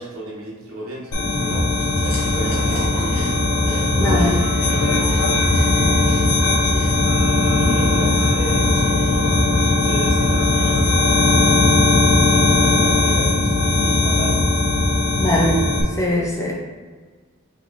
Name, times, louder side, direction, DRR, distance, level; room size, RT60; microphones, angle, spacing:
voice 1, 0.0-4.2 4.6-6.9 7.3-11.9 12.2-14.6, right 1 dB, 65° right, -5 dB, 1.1 m, -34 dB
sound 1, 0.9-12.6, right 2 dB, 40° right, 0.3 m, -37 dB
sound 2, 1.1-15.8, left 2 dB, 90° left, 0.7 m, -18 dB
Chewing mastication, 1.1-7.0, equal, 30° left, 1.0 m, -38 dB
voice 2, 4.0-4.4 15.2-16.5, left 1 dB, 15° left, -2 dB, 0.5 m, -21 dB
5.6 x 2.9 x 2.6 m, 1.5 s
head